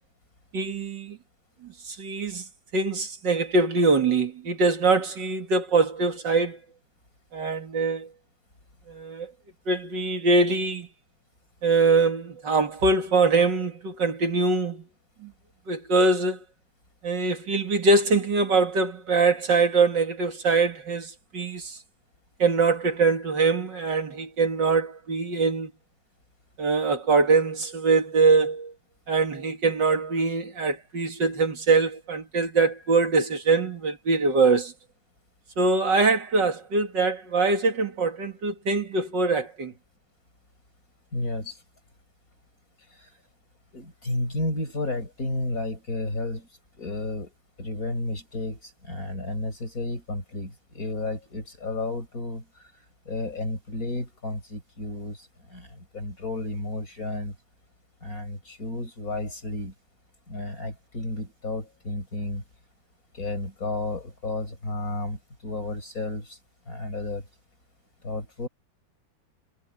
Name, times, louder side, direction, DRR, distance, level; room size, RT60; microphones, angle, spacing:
voice 1, 0.5-1.2 1.6-2.5 2.7-6.6 7.3-8.1 8.9-9.3 9.7-10.9 11.6-14.8 15.2-15.3 15.7-16.4 17.0-21.8 22.4-25.7 26.6-28.7 29.1-34.7 35.6-39.7, right 3 dB, 60° right, 2.8 m, -23 dB
voice 2, 41.1-41.6 42.9-43.1 43.7-46.5 46.8-52.5 53.0-57.4 58.0-59.7 60.3-62.4 63.1-66.4 66.7-67.2 68.0-68.5, left 2 dB, 45° left, 6.7 m, -32 dB
omnidirectional pair, 2.2 m